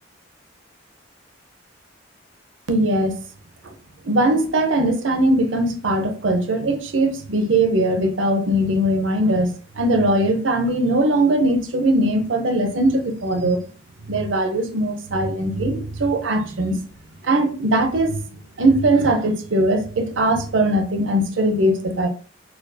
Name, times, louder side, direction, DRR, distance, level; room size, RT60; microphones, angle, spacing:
voice 1, 2.7-3.1 4.0-13.6 14.1-16.8 17.2-18.2 18.6-22.1, right 1 dB, 75° right, 0.6 m, -20 dB
4.3 x 2.3 x 2.6 m
head